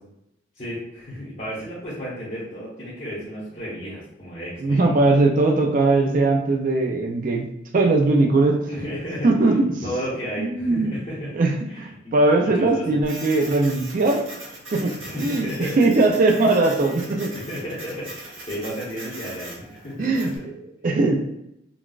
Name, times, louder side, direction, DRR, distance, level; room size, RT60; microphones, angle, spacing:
voice 1, 0.5-5.0 8.7-9.3 9.8-11.3 11.7-12.1 12.4-12.9 15.0-15.8 17.3-20.1, equal, 35° left, -10 dB, 1.0 m, -33 dB
voice 2, 4.6-7.4 7.7-8.6 9.2-9.8 10.4-10.9 11.3-14.2 14.7-17.3 20.0-21.2, right 2 dB, 40° right, 2 dB, 0.3 m, -20 dB
Printer, 13.0-20.4, right 1 dB, 70° right, 1.2 m, -39 dB
4.0 x 2.3 x 2.3 m, 0.81 s
head